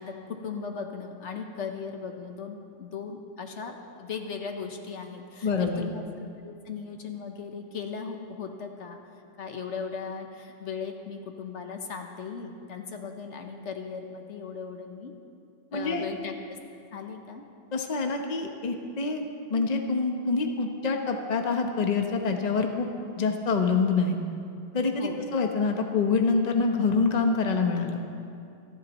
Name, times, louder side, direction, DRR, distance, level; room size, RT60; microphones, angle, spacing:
voice 1, 0.0-9.0 9.4-15.1 15.7-16.6 16.9-17.4 25.0-25.2, left 5 dB, 75° left, 4 dB, 1.3 m, -38 dB
voice 2, 5.4-5.8 15.7-16.0 17.7-19.2 19.5-22.9 23.2-24.2 24.7-28.0, left 4 dB, 35° left, 3 dB, 1.0 m, -26 dB
27.5 x 11.0 x 3.1 m, 2.5 s
omnidirectional pair, 1.2 m